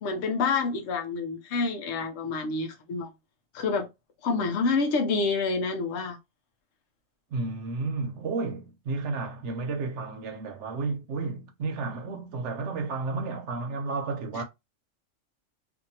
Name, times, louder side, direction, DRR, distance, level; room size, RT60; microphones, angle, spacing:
voice 1, 0.0-3.1 3.5-3.9 4.2-6.2 14.3-14.4, left 4 dB, 70° left, 0.9 m, -28 dB
voice 2, 7.3-14.4, right 3 dB, 70° right, 1.0 m, -32 dB
2.7 x 2.5 x 2.7 m
omnidirectional pair, 1.3 m